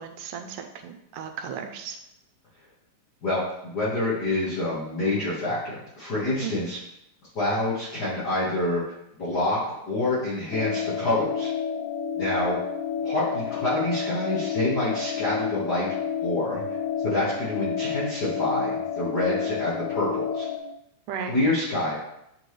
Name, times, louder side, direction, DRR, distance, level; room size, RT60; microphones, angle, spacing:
voice 1, 0.0-2.0 6.4-6.7 21.1-21.4, right 7 dB, 80° right, 5 dB, 2.1 m, -35 dB
voice 2, 3.2-6.8 7.3-8.8 9.1-9.6 9.9-11.5 12.1-12.6 13.0-15.9 16.2-16.6 17.0-20.5 21.3-21.9, left 2 dB, 40° left, -9 dB, 1.6 m, -27 dB
sound 1, 10.5-20.6, left 7 dB, 80° left, 2.5 m, -30 dB
8.9 x 3.8 x 3.2 m, 0.81 s
omnidirectional pair, 3.7 m